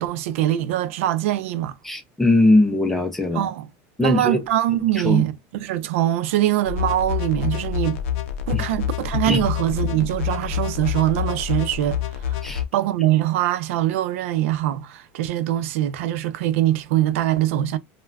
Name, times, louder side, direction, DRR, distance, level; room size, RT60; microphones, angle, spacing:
voice 1, 0.0-1.8 3.3-3.7 4.0-8.0 8.5-12.4 12.7-17.8, right 13 dB, 80° right, 0.4 m, -23 dB
voice 2, 1.8-3.5 4.0-4.4 5.0-5.2 8.5-8.6 9.3-9.4 12.4-12.6, left 2 dB, 5° left, 0.4 m, -20 dB
sound 1, 6.7-12.6, left 10 dB, 90° left, 0.5 m, -27 dB
3.3 x 2.2 x 2.3 m
cardioid pair, 180°, 7 cm